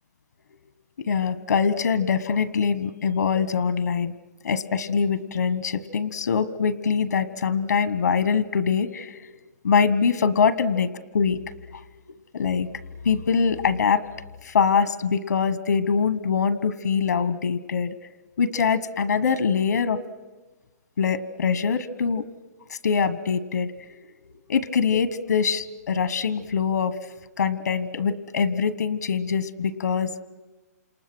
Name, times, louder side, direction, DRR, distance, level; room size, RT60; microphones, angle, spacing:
voice 1, 1.0-4.1 4.4-9.3 9.6-10.9 11.1-11.4 12.3-12.7 13.0-14.0 14.4-17.9 18.4-20.0 21.0-22.2 22.7-24.0 24.5-26.9 27.4-30.2, left 6 dB, 85° left, 14 dB, 1.2 m, -23 dB
29.5 x 27.5 x 6.2 m, 1.2 s
hypercardioid pair, 170°, 9 cm